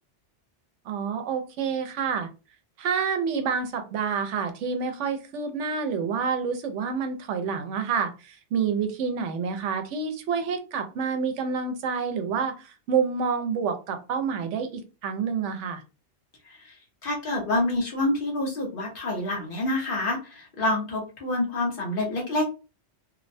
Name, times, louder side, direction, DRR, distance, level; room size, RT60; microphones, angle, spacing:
voice 1, 0.8-2.3 2.8-15.8, right 6 dB, 90° right, 7 dB, 0.9 m, -28 dB
voice 2, 17.0-22.4, left 2 dB, 50° left, 0 dB, 0.9 m, -27 dB
2.7 x 2.1 x 2.5 m, 0.31 s
omnidirectional pair, 1.2 m